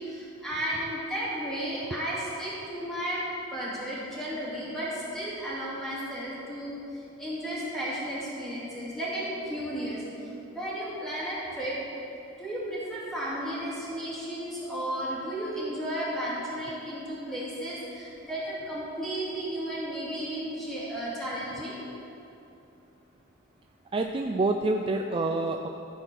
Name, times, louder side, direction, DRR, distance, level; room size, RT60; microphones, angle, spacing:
voice 1, 0.1-3.2 3.5-6.7 7.2-10.0 10.5-11.8 12.4-21.8, right 1 dB, ahead, -8 dB, 2.5 m, -33 dB
voice 2, 23.9-25.7, right 2 dB, 25° right, 4 dB, 0.3 m, -27 dB
13.5 x 4.6 x 6.2 m, 2.8 s
head